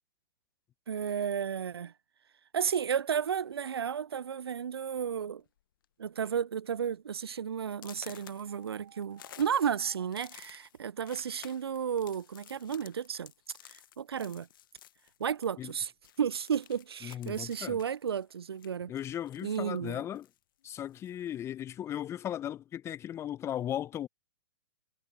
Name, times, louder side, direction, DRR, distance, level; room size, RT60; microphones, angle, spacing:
voice 1, 0.9-1.9 2.5-5.4 6.0-13.3 13.6-14.5 15.2-15.9 16.2-18.9 19.4-20.0, right 8 dB, 75° right, 0.5 m, -33 dB
sound 1, 3.2-3.5 4.3-4.4 4.8-5.1 5.4-5.8 6.3-6.4 6.9-7.0 7.7-15.8 16.0-19.8 20.1-21.2, left 12 dB, 60° left, 1.2 m, -54 dB
sound 2, 8.5-10.1, right 11 dB, 60° right, 1.9 m, -58 dB
voice 2, 17.0-17.8 18.9-20.2 20.6-24.1, left 11 dB, 20° left, 0.8 m, -37 dB
figure-of-eight pair, 115°, 13 cm